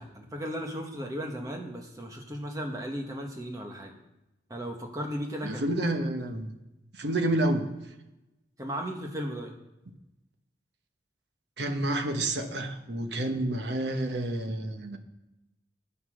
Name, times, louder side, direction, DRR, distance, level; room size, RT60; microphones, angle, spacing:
voice 1, 0.0-4.0 4.5-5.6 6.3-6.4 8.6-9.5, equal, 20° right, 2 dB, 1.4 m, -36 dB
voice 2, 5.4-6.5 6.9-7.7 11.6-15.0, right 1 dB, 75° right, 6 dB, 1.1 m, -29 dB
9.8 x 8.6 x 6.4 m, 0.96 s
head